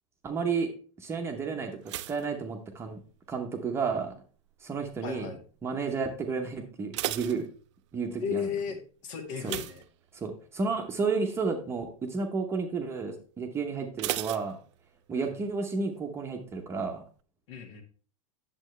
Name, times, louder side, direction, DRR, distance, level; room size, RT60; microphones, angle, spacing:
voice 1, 0.2-0.7 1.0-1.7 2.1-3.0 3.3-4.1 4.6-5.3 5.6-7.4 7.9-8.5 9.4-9.5 10.1-14.6 15.1-17.0, right 4 dB, 15° right, 3 dB, 0.9 m, -31 dB
sound 1, 1.8-3.3 3.6-4.1 4.7-5.1 5.4-5.5 5.9-6.0 6.6-8.1 9.4-10.6 10.9-11.2 11.6-11.7 14.0-15.2 15.5-15.6, right 15 dB, 60° right, 0.5 m, -37 dB
voice 2, 5.0-5.4 8.2-8.8 9.0-9.8 15.2-15.3 17.5-17.8, left 6 dB, 60° left, 5 dB, 1.8 m, -34 dB
8.9 x 7.5 x 3.2 m, 0.40 s
supercardioid pair, 160°, 17 cm